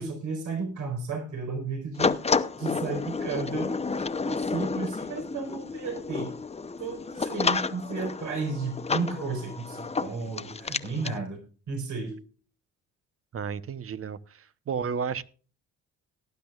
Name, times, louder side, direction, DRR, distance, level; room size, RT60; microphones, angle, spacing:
voice 1, 0.0-2.2 2.6-6.3 6.8-11.4 11.7-12.1, right 4 dB, 75° right, 4 dB, 4.7 m, -33 dB
sound 1, 2.0-11.2, left 4 dB, 20° left, 0.8 m, -30 dB
voice 2, 13.3-15.2, right 6 dB, 50° right, 14 dB, 0.9 m, -32 dB
18.5 x 10.5 x 2.4 m, 0.38 s
cardioid pair, 90°, 30 cm